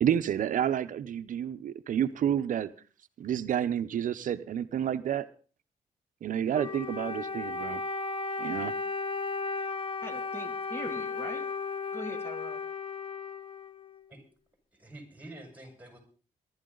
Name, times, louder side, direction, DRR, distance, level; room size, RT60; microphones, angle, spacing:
voice 1, 0.0-2.7 3.2-5.3 6.2-7.8 8.4-8.7, right 9 dB, 70° right, 11 dB, 0.8 m, -29 dB
Wind instrument woodwind instrument, 6.5-14.1, left 4 dB, 40° left, 1.1 m, -35 dB
voice 2, 10.0-11.5 11.9-12.6, equal, 15° left, 4 dB, 2.8 m, -41 dB
voice 3, 14.7-16.0, right 1 dB, 10° right, 3 dB, 5.5 m, -47 dB
21.5 x 12.0 x 4.0 m, 0.37 s
cardioid pair, 90°, 14 cm